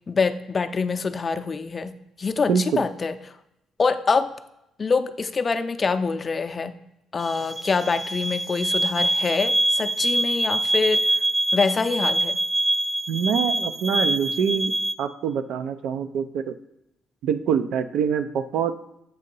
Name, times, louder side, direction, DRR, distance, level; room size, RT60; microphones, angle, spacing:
voice 1, 0.0-3.2 3.8-4.3 4.8-6.8 7.1-11.1 11.5-12.4, left 4 dB, 35° left, 8 dB, 0.4 m, -25 dB
voice 2, 2.5-2.8 13.1-16.5 17.2-18.7, right 7 dB, 80° right, 10 dB, 0.4 m, -25 dB
sound 1, 7.2-14.9, right 1 dB, 30° right, 0.5 m, -24 dB
7.5 x 2.8 x 5.4 m, 0.86 s
cardioid pair, 90°, 0 cm